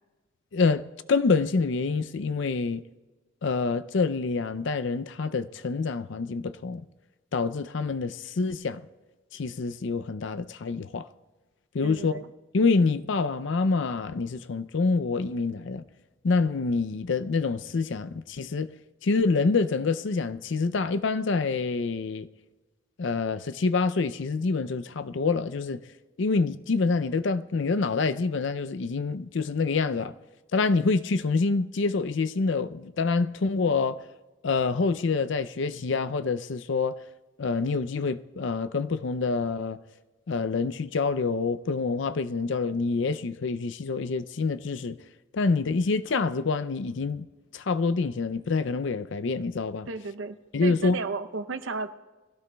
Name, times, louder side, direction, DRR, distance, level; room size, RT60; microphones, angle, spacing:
voice 1, 0.5-2.8 3.4-6.8 7.3-8.8 9.3-11.1 11.7-12.2 12.5-15.8 16.2-18.7 19.0-22.3 23.0-25.8 26.2-30.1 30.5-34.0 34.4-37.0 37.4-39.8 40.3-45.0 45.3-47.3 47.5-49.9 50.5-51.0, left 4 dB, 70° left, 0.5 m, -26 dB
voice 2, 11.8-12.3 49.9-51.9, right 4 dB, 80° right, 0.7 m, -34 dB
21.5 x 16.0 x 2.3 m
head